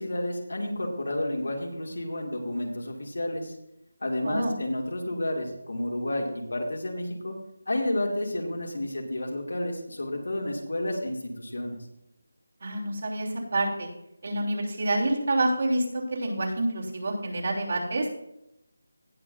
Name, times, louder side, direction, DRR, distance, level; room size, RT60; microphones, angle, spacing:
voice 1, 0.0-3.5 4.0-7.3 7.7-11.8, left 1 dB, 80° left, 1 dB, 2.5 m, -31 dB
voice 2, 4.2-4.5 12.6-13.9 14.2-18.1, right 1 dB, 55° right, -1 dB, 3.2 m, -27 dB
18.0 x 7.4 x 2.7 m, 0.82 s
figure-of-eight pair, 170°, 0 cm